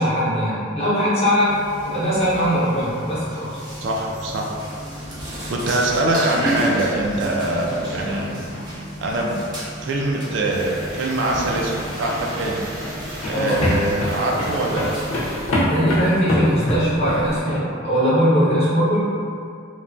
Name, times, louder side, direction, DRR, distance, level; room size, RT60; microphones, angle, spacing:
voice 1, 0.0-1.6 1.8-3.5 13.3-13.6 15.6-19.1, equal, 30° left, -10 dB, 0.7 m, -20 dB
sound 1, 1.5-15.3, equal, 20° right, 0.6 m, -32 dB
voice 2, 3.8-4.5 5.5-8.3 9.0-9.5 9.8-12.7 13.4-14.9, right 2 dB, 55° right, -1 dB, 0.3 m, -23 dB
sound 2, 10.5-15.5, equal, 75° right, 0.8 m, -36 dB
sound 3, 12.1-17.6, equal, 80° left, 0.6 m, -25 dB
3.1 x 2.1 x 2.6 m, 2.4 s
head